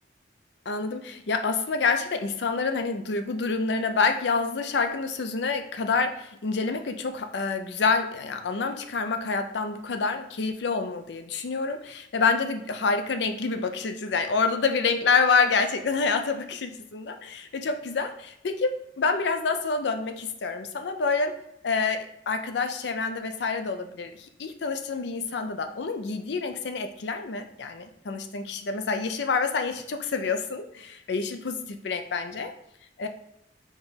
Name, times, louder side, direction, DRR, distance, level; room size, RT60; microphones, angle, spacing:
voice 1, 0.7-21.3 21.6-32.5 33.0-33.1, left 4 dB, 75° left, 7 dB, 0.5 m, -27 dB
4.4 x 3.4 x 3.2 m, 0.78 s
head